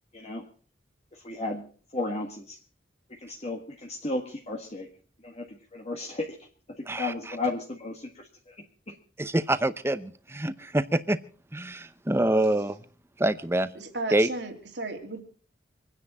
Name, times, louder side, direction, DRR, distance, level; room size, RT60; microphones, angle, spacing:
voice 1, 0.1-0.4 1.2-1.7 1.9-2.6 3.1-4.9 5.2-6.4 7.0-8.5 8.9-9.0, left 2 dB, 40° left, 1 dB, 1.7 m, -34 dB
voice 2, 6.9-7.4 9.2-11.2 11.5-12.8 13.2-13.7 14.1-14.3, right 1 dB, 15° right, 13 dB, 0.7 m, -26 dB
voice 3, 13.7-15.2, right 2 dB, 80° right, 3 dB, 2.8 m, -34 dB
26.0 x 9.9 x 4.2 m, 0.41 s
head